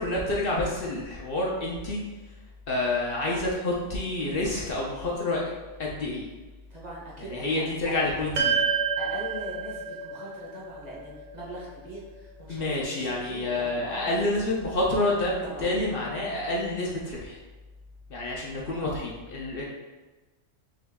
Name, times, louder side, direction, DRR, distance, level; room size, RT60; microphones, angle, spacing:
voice 1, 0.0-2.0 2.7-5.4 5.8-6.3 7.2-8.5 12.5-17.4 18.1-19.6, left 2 dB, 55° left, -3 dB, 0.8 m, -28 dB
voice 2, 6.7-8.1 9.0-14.1 15.4-15.7 18.7-19.0, right 1 dB, 40° right, -5 dB, 0.9 m, -41 dB
sound 1, 8.4-12.8, right 6 dB, 55° right, 0.5 m, -30 dB
3.8 x 3.1 x 3.4 m, 1.2 s
omnidirectional pair, 1.2 m